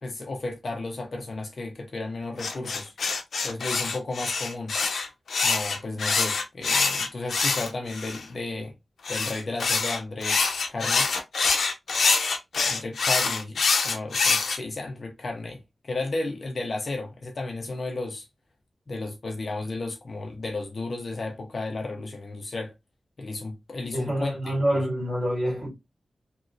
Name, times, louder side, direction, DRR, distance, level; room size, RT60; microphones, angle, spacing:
voice 1, 0.0-2.9 3.4-4.7 5.4-8.7 9.1-11.1 12.7-18.3 18.9-22.7 23.2-24.8, left 2 dB, 45° left, 0.7 m, -33 dB
sound 1, 2.4-8.2 9.0-14.6, left 4 dB, 85° left, 0.6 m, -25 dB
voice 2, 23.9-25.7, equal, 35° right, 1.8 m, -26 dB
3.0 x 2.6 x 2.5 m
wide cardioid pair, 175°, 0 cm